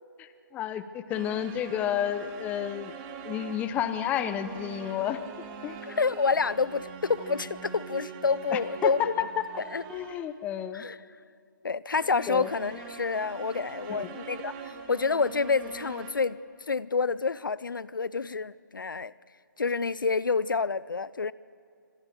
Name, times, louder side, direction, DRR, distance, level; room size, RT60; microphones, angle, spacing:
voice 1, 0.2-2.9 3.2-5.2 5.6-5.8 8.5-9.2 9.9-10.9 12.3-12.5 13.9-14.1, left 10 dB, 15° left, 13 dB, 0.8 m, -31 dB
sound 1, 1.1-10.4 11.9-16.1, right 6 dB, 25° right, 2.7 m, -43 dB
voice 2, 5.8-9.2 9.7-9.8 10.7-11.0 11.6-16.4 16.7-19.1 19.6-21.3, left 4 dB, 70° left, 20 dB, 0.6 m, -28 dB
27.0 x 25.5 x 6.8 m, 2.4 s
figure-of-eight pair, 140°, 11 cm